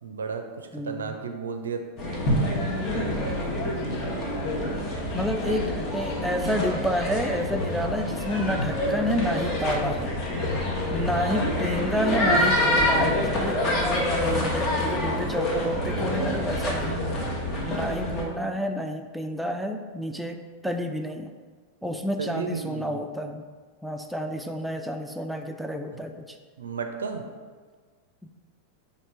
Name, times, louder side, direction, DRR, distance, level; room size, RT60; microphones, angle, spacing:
voice 1, 0.0-1.8 2.9-5.6 7.7-7.9 11.0-11.4 11.7-12.0 15.8-16.6 17.0-17.3 22.2-23.0 25.9-26.0 26.6-27.2, right 5 dB, 70° right, 5 dB, 0.5 m, -35 dB
voice 2, 0.7-1.2 5.1-10.1 10.9-17.0 17.6-21.3 21.8-23.4 23.8-26.4 28.2-28.3, equal, ahead, 5 dB, 0.4 m, -30 dB
sound 1, 2.0-18.2, left 1 dB, 30° left, 0.9 m, -26 dB
4.3 x 2.9 x 4.3 m, 1.5 s
figure-of-eight pair, 90°, 0 cm